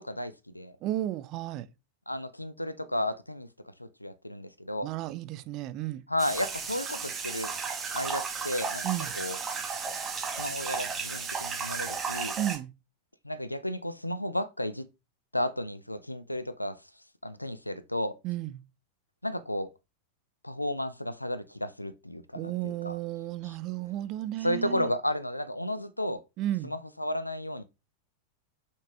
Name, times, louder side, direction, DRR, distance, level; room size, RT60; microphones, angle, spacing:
voice 1, 0.0-0.8 2.1-3.5 3.8-4.9 6.1-7.5 7.9-8.9 9.1-9.4 10.4-12.3 13.2-14.9 15.3-16.8 17.2-18.1 19.2-19.7 20.4-23.0 23.4-23.5 24.4-26.2 26.6-27.6, left 1 dB, 85° left, 0.7 m, -33 dB
voice 2, 0.8-1.7 4.8-6.0 8.8-9.1 12.4-12.7 18.2-18.6 22.3-24.9 26.4-26.7, right 14 dB, 40° right, 0.7 m, -33 dB
sound 1, 6.2-12.6, right 5 dB, 20° right, 1.9 m, -34 dB
6.2 x 5.8 x 3.4 m
figure-of-eight pair, 90°, 0 cm